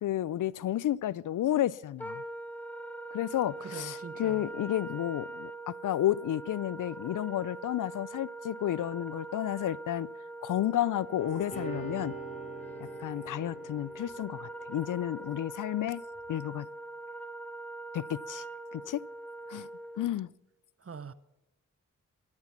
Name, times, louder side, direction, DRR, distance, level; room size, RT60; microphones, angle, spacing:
voice 1, 0.0-2.2 3.1-10.1 10.4-12.2 12.8-16.0 16.3-16.7 17.9-18.4 18.7-19.0 19.5-19.7 20.0-20.3, left 12 dB, 75° left, 0.5 m, -31 dB
Wind instrument woodwind instrument, 2.0-20.1, right 2 dB, 5° left, 1.6 m, -43 dB
voice 2, 3.6-4.5 20.8-21.1, right 6 dB, 45° right, 0.9 m, -43 dB
sound 1, 11.2-15.3 16.1-16.2, right 4 dB, 20° left, 7.1 m, -44 dB
13.5 x 13.0 x 5.9 m
cardioid pair, 40°, 32 cm